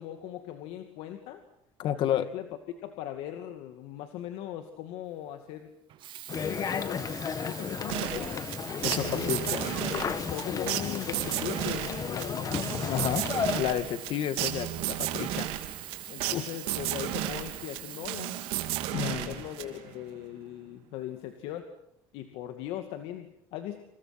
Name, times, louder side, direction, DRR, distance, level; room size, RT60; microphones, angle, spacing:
voice 1, 0.0-1.4 1.8-2.5 2.8-5.7 6.4-8.5 8.9-9.8 10.0-13.0 16.1-18.4 19.0-21.7 22.1-23.8, left 12 dB, 80° left, 6 dB, 2.4 m, -40 dB
voice 2, 1.8-2.3 8.8-10.0 12.9-13.3 13.6-15.5 16.3-16.5 18.9-19.4, left 11 dB, 60° left, 11 dB, 2.3 m, -31 dB
Sink (filling or washing), 5.9-19.7 20.4-20.5, right 13 dB, 60° right, 1.5 m, -45 dB
sound 1, 6.3-13.6, left 7 dB, 40° left, 1.8 m, -33 dB
sound 2, 7.9-20.0, right 14 dB, 80° right, 3.2 m, -34 dB
29.0 x 28.0 x 6.1 m, 0.77 s
cardioid pair, 115°, 10 cm